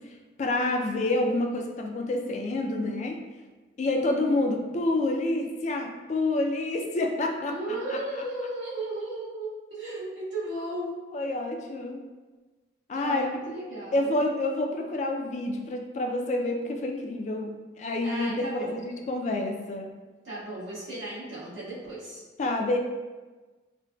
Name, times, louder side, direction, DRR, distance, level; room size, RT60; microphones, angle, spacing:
voice 1, 0.4-3.2 3.8-7.5 7.9-8.0 11.1-12.0 12.9-13.4 13.9-17.5 17.8-19.9 22.4-22.8, left 2 dB, 40° left, 2 dB, 0.3 m, -28 dB
voice 2, 7.5-11.0 12.9-14.1 18.0-18.9 20.2-22.2, right 1 dB, 90° right, -11 dB, 1.4 m, -35 dB
3.8 x 2.1 x 2.2 m, 1.3 s
head